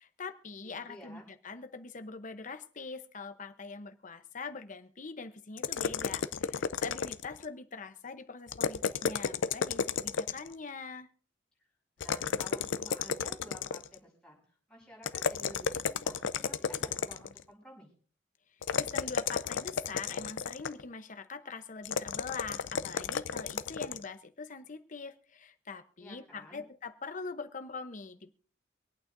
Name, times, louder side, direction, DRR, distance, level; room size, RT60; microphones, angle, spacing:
voice 1, 0.0-11.1 18.7-28.3, left 4 dB, 40° left, 9 dB, 0.8 m, -43 dB
voice 2, 0.6-1.3 12.0-14.4 14.7-17.9 26.0-26.6, equal, 5° left, -3 dB, 5.8 m, -52 dB
sound 1, 5.6-7.5 8.5-10.5 12.0-14.0 15.0-17.4 18.6-20.8 21.8-24.1, left 6 dB, 70° left, 0.5 m, -33 dB
25.5 x 8.8 x 2.6 m, 0.44 s
head